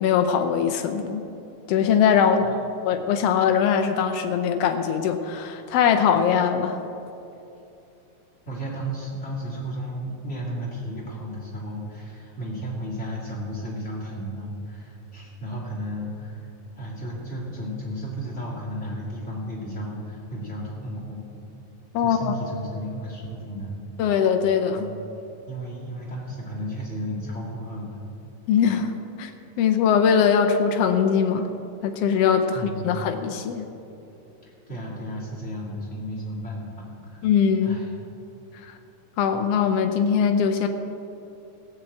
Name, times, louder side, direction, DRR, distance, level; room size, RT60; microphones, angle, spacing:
voice 1, 0.0-1.2 1.7-2.5 2.8-6.8 21.9-22.3 24.0-24.9 28.5-28.9 29.2-29.3 29.6-31.5 31.8-33.7 37.2-37.8 38.6-38.7 39.2-40.7, left 7 dB, 85° left, 6 dB, 1.3 m, -21 dB
voice 2, 8.5-16.5 16.8-21.2 22.0-23.8 24.7-25.1 25.5-28.0 32.5-33.1 34.4-37.2 37.6-37.9, equal, 25° left, -4 dB, 2.4 m, -34 dB
16.5 x 5.9 x 7.9 m, 2.7 s
omnidirectional pair, 3.6 m